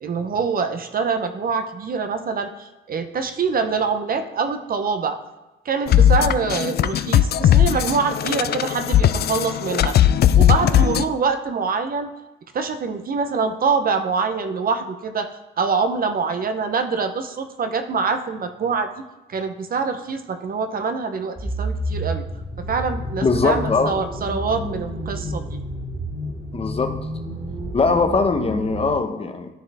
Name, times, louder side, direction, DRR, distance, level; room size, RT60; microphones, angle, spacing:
voice 1, 0.0-5.2 5.6-10.0 10.3-12.1 12.5-18.9 19.3-22.3 22.6-25.6, right 5 dB, 50° right, 7 dB, 0.8 m, -25 dB
sound 1, 5.9-11.1, left 10 dB, 55° left, 0.4 m, -18 dB
sound 2, 21.4-29.0, equal, 25° right, 2.2 m, -30 dB
voice 2, 23.2-23.9 26.5-26.9 27.7-29.5, left 4 dB, 30° left, 7 dB, 0.9 m, -20 dB
13.0 x 4.4 x 3.5 m, 1.1 s
cardioid pair, 90°, 20 cm